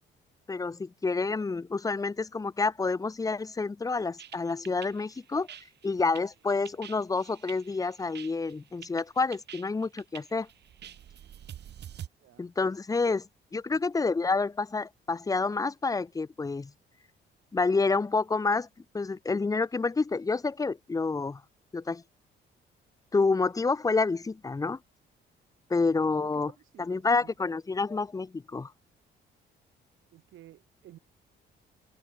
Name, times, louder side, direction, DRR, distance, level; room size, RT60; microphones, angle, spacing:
voice 1, 0.5-5.5 5.8-10.5 12.4-13.2 13.5-16.7 17.5-18.7 18.9-21.4 21.7-22.0 23.1-24.8 25.7-26.5 26.8-28.7, left 4 dB, 15° left, 0.6 m, -28 dB
sound 1, 4.2-12.1, right 10 dB, 60° right, 1.1 m, -47 dB
voice 2, 12.2-12.5 13.1-13.2 13.7-13.9 25.8-27.3 30.1-31.0, right 13 dB, 80° right, 3.8 m, -54 dB
cardioid pair, 90°, 20 cm